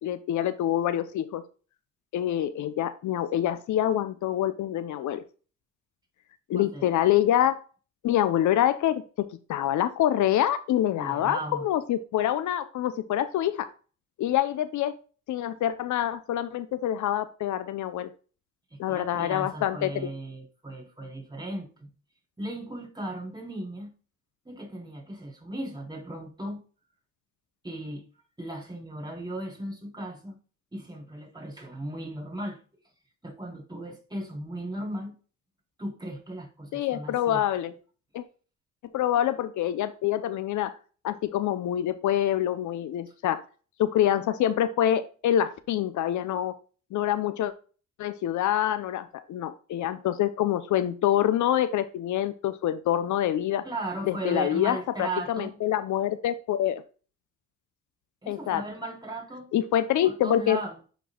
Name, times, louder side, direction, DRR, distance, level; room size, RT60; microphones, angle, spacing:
voice 1, 0.0-1.4 2.1-5.2 6.5-7.6 8.0-13.7 14.2-15.0 15.3-18.1 18.8-20.1 36.7-37.7 38.1-38.2 38.9-40.7 41.0-43.4 43.8-46.6 46.9-47.5 48.0-53.6 54.1-56.8 58.3-58.6 59.5-60.6, left 11 dB, 75° left, 0.7 m, -26 dB
voice 2, 6.5-6.9 11.0-11.7 18.7-21.9 22.4-23.9 24.5-26.6 27.6-28.0 28.4-30.4 30.7-32.6 33.2-35.1 35.8-37.4 53.6-55.6 58.2-59.5 60.0-60.8, right 1 dB, 15° right, 3.6 m, -36 dB
10.0 x 4.6 x 2.3 m
cardioid pair, 90°, 30 cm